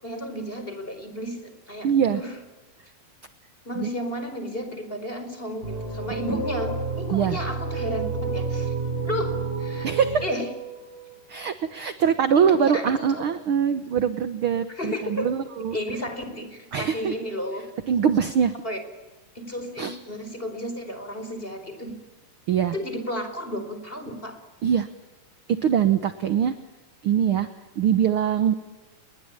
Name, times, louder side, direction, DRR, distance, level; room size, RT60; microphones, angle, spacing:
voice 1, 0.0-2.4 3.6-8.7 9.0-9.9 10.2-10.5 12.3-12.9 14.7-15.3 15.7-17.6 18.6-18.8 19.3-21.9 22.7-24.4, equal, 15° left, 7 dB, 4.6 m, -32 dB
voice 2, 1.8-2.2 3.8-3.9 7.1-7.4 9.8-10.2 11.3-15.8 16.7-17.1 17.9-18.5 19.8-20.0 22.5-22.7 24.6-24.9 25.5-26.5 27.0-27.5 27.8-28.5, right 8 dB, 65° right, 10 dB, 1.4 m, -22 dB
sound 1, 5.6-11.8, right 3 dB, 15° right, 6.8 m, -30 dB
28.5 x 22.5 x 8.9 m, 1.2 s
omnidirectional pair, 3.8 m